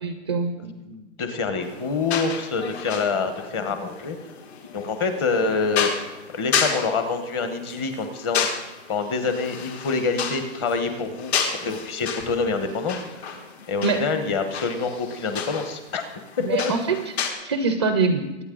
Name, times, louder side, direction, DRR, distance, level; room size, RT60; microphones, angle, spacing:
voice 1, 0.0-0.6 13.8-14.0 16.4-18.4, right 4 dB, 25° right, 8 dB, 0.4 m, -24 dB
voice 2, 0.6-4.2 4.7-5.9 6.3-8.5 8.9-11.3 11.6-13.0 13.7-16.0, left 4 dB, 20° left, 7 dB, 0.9 m, -26 dB
sound 1, 1.6-17.3, left 6 dB, 60° left, 2.3 m, -32 dB
23.5 x 9.1 x 3.8 m, 1.1 s
hypercardioid pair, 170°, 36 cm